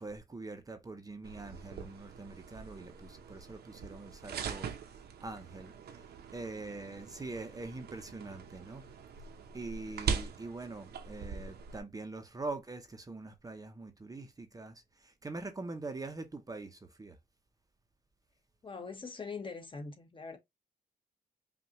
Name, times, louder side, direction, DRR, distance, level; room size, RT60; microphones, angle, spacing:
voice 1, 0.0-8.9 9.5-17.2, right 3 dB, 20° right, 0.7 m, -44 dB
sound 1, 1.2-11.8, right 6 dB, 70° right, 0.8 m, -42 dB
voice 2, 18.6-20.4, left 4 dB, 30° left, 1.1 m, -42 dB
5.4 x 2.4 x 2.9 m
cardioid pair, 115°, 17 cm